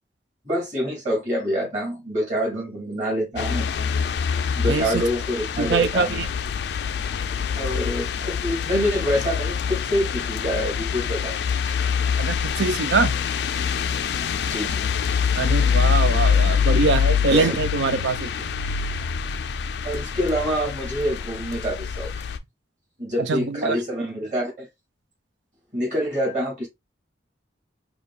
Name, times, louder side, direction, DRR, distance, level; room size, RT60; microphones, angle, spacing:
voice 1, 0.5-3.7 4.6-6.3 7.6-12.3 14.4-14.9 17.3-17.5 19.8-22.1 23.0-24.7 25.7-26.7, equal, 40° right, 2.4 m, -26 dB
sound 1, 3.4-22.4, left 7 dB, 65° left, 0.3 m, -25 dB
voice 2, 4.7-5.0 5.6-6.3 12.2-13.1 15.3-18.5 23.2-23.8, right 4 dB, 80° right, 0.5 m, -23 dB
5.1 x 2.3 x 2.4 m
head